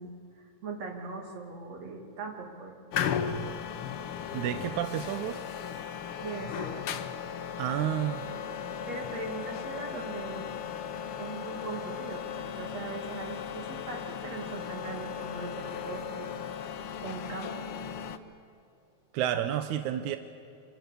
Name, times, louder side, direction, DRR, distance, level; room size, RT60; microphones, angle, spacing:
voice 1, 0.0-2.8 6.2-6.9 8.9-10.5 11.2-16.3 17.0-17.7, right 4 dB, 60° right, 1 dB, 3.6 m, -40 dB
sound 1, 2.9-18.2, left 8 dB, 65° left, 1.4 m, -36 dB
voice 2, 4.3-5.4 7.6-8.3 19.1-20.2, right 11 dB, 80° right, 8 dB, 2.1 m, -30 dB
26.0 x 25.0 x 6.9 m, 2.7 s
omnidirectional pair, 3.5 m